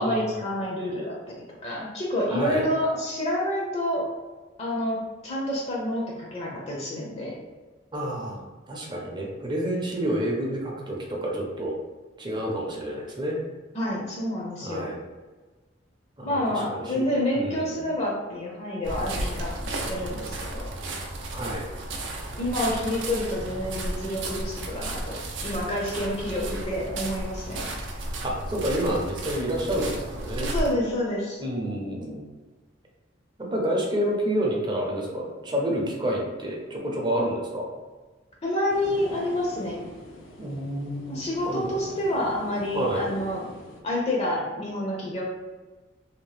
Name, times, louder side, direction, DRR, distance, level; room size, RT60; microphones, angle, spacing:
voice 1, 0.0-1.3 1.6-4.1 4.6-7.4 13.7-14.9 16.2-20.6 22.4-27.7 30.4-31.4 38.4-39.8 41.1-43.4 43.8-45.2, left 1 dB, 35° left, -3 dB, 0.5 m, -28 dB
voice 2, 2.3-2.7 7.9-11.8 12.2-13.4 14.6-15.0 16.2-16.4 16.7-17.0 17.3-17.8 21.3-21.6 28.2-30.5 31.4-32.2 33.4-37.7 40.4-41.2 41.4-41.7 42.7-43.1, right 1 dB, 25° right, -2 dB, 0.5 m, -29 dB
sound 1, 18.8-30.7, right 1 dB, 75° right, 0.5 m, -33 dB
sound 2, 38.7-43.8, left 1 dB, 80° left, 0.5 m, -43 dB
2.8 x 2.0 x 3.2 m, 1.3 s
head